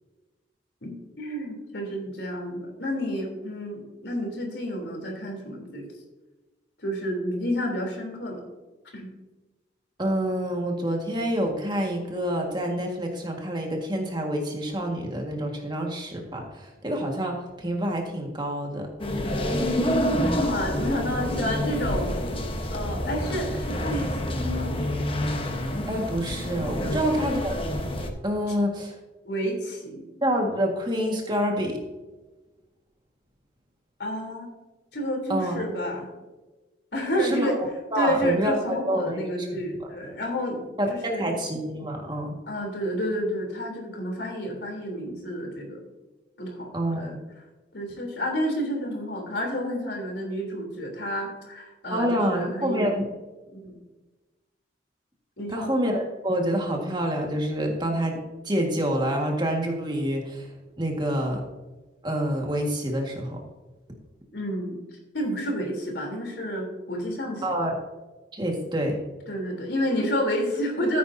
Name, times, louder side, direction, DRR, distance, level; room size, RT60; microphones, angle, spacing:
voice 1, 0.8-5.9 6.8-8.5 8.9-9.1 20.0-22.1 22.7-24.7 26.8-27.0 29.2-30.0 34.0-34.5 34.9-36.1 36.9-37.6 38.0-41.3 42.5-45.9 46.4-47.2 47.7-52.9 53.5-53.7 55.4-55.7 64.3-64.8 65.1-67.6 69.3-71.0, equal, 70° left, 2 dB, 3.5 m, -30 dB
voice 2, 10.0-18.9 25.9-27.6 28.2-29.0 30.2-31.8 35.3-35.6 37.2-39.9 40.8-42.4 46.7-47.2 51.9-53.1 55.5-58.1 58.4-60.5 60.8-61.4 62.0-63.4 67.4-67.8 68.3-69.0, equal, 25° right, 1 dB, 1.7 m, -27 dB
sound 1, 19.0-28.1, equal, 30° left, 1.1 m, -28 dB
14.0 x 9.4 x 2.8 m, 1.2 s
head